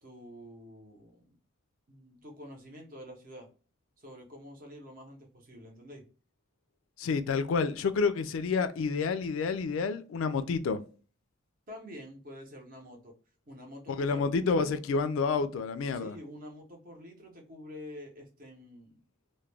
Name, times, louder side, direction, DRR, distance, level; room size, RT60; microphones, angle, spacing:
voice 1, 0.0-1.3 1.9-3.5 4.0-6.1 11.7-13.1 13.5-14.3 15.9-19.0, equal, 45° right, 0.7 m, -47 dB
voice 2, 7.0-10.8 13.9-16.1, left 4 dB, 85° left, 0.3 m, -29 dB
2.3 x 2.1 x 3.2 m
head